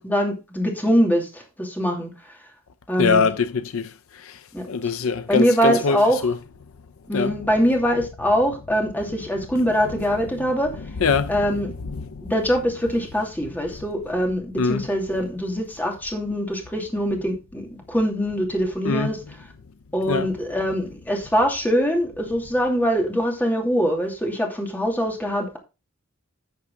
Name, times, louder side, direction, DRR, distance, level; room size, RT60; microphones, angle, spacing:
voice 1, 0.0-2.1 2.9-3.2 4.5-4.7 5.3-6.2 7.1-10.7 11.3-11.7 12.2-19.2 19.9-25.6, equal, 10° left, 2.7 m, -23 dB
voice 2, 3.0-6.4 7.1-7.4 9.9-10.0 10.8-12.3 14.6-14.9 18.8-19.1 20.1-20.3, left 5 dB, 75° left, 0.5 m, -24 dB
11.5 x 6.5 x 3.8 m
head